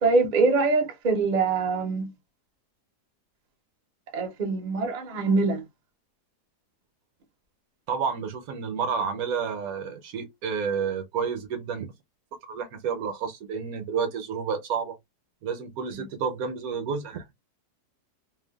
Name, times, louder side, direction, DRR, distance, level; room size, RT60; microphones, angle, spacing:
voice 1, 0.0-2.1 4.1-5.6 15.9-16.1, right 3 dB, 45° right, 0.6 m, -24 dB
voice 2, 7.9-11.9 12.5-15.0 15.4-17.2, right 6 dB, 70° right, 1.1 m, -30 dB
3.2 x 2.2 x 2.2 m
omnidirectional pair, 1.7 m